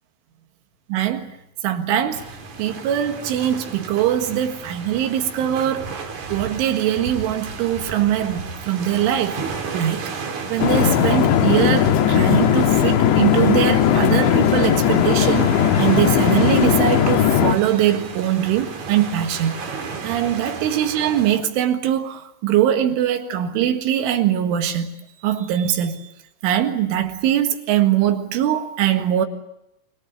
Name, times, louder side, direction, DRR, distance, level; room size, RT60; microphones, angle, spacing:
voice 1, 0.9-1.3 1.6-2.2 2.6-9.4 9.7-10.1 10.5-15.5 15.8-19.7 20.0-24.9 25.2-26.1 26.4-29.3, right 11 dB, 80° right, 4.1 m, -22 dB
sound 1, 2.1-21.4, right 5 dB, 45° right, 3.5 m, -34 dB
sound 2, 10.6-17.6, left 9 dB, 75° left, 3.4 m, -17 dB
25.5 x 22.0 x 8.3 m
omnidirectional pair, 5.7 m